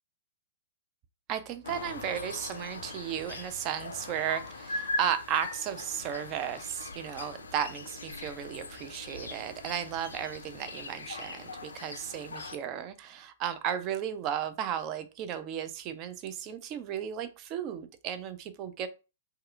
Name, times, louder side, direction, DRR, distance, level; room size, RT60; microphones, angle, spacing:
voice 1, 1.3-18.9, right 9 dB, 35° right, 11 dB, 0.4 m, -34 dB
sound 1, 1.6-12.6, left 3 dB, 75° left, 0.4 m, -40 dB
2.7 x 2.3 x 2.3 m, 0.31 s
figure-of-eight pair, 110°, 0 cm